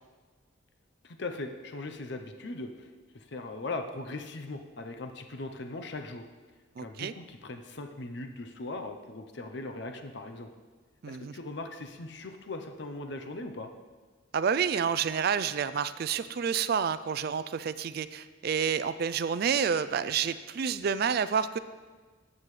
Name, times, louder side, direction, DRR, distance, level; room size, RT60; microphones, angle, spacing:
voice 1, 1.0-2.9 3.1-6.2 6.8-10.5 11.1-13.7, left 2 dB, 55° left, 6 dB, 0.7 m, -39 dB
voice 2, 6.8-7.1 11.0-11.4 14.3-21.6, right 7 dB, 50° right, 14 dB, 0.3 m, -29 dB
14.5 x 7.6 x 3.2 m, 1.4 s
head